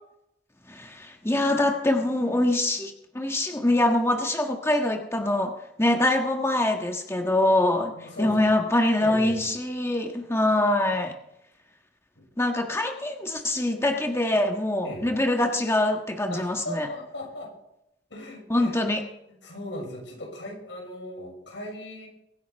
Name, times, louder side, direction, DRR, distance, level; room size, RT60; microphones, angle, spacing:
voice 1, 0.7-5.5 5.8-7.9 8.2-11.1 12.4-16.9 18.5-19.0, left 1 dB, 15° left, 3 dB, 1.5 m, -24 dB
voice 2, 7.9-8.4 9.0-9.4 12.1-12.3 14.8-15.0 16.3-17.5 18.1-18.8 19.3-22.1, left 1 dB, 90° left, -1 dB, 6.7 m, -38 dB
23.5 x 10.0 x 3.5 m, 0.82 s
head